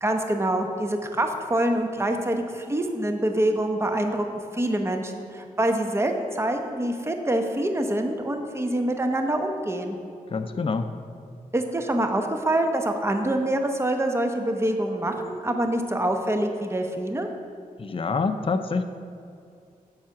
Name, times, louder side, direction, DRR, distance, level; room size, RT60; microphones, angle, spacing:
voice 1, 0.0-4.3 4.5-10.0 11.5-17.3, right 1 dB, 20° right, 5 dB, 0.9 m, -25 dB
voice 2, 10.3-10.9 17.8-18.8, left 4 dB, 40° left, 9 dB, 0.5 m, -26 dB
7.4 x 5.7 x 5.9 m, 2.4 s
cardioid pair, 55°, 15 cm